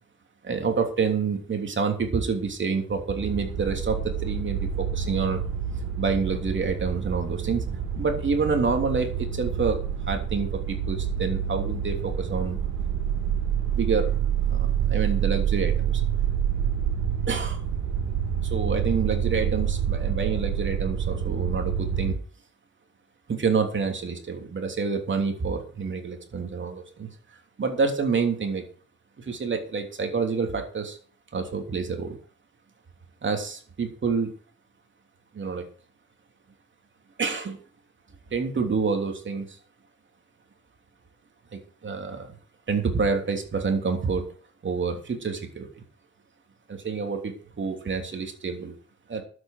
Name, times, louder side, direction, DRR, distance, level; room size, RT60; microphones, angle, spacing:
voice 1, 0.4-5.4 6.0-7.6 8.0-9.8 10.1-12.6 13.7-14.1 14.5-16.0 17.3-17.6 18.4-22.2 23.3-27.1 27.6-28.6 29.2-31.0 31.3-32.2 33.2-34.3 35.3-35.6 37.2-37.6 38.3-39.6 41.5-42.3 42.7-44.3 44.6-45.7 46.7-48.7 49.1-49.2, right 5 dB, 40° right, 4 dB, 3.1 m, -28 dB
sound 1, 3.2-22.1, right 8 dB, 70° right, 3.7 m, -27 dB
12.0 x 8.2 x 6.7 m, 0.43 s
cardioid pair, 90°, 30 cm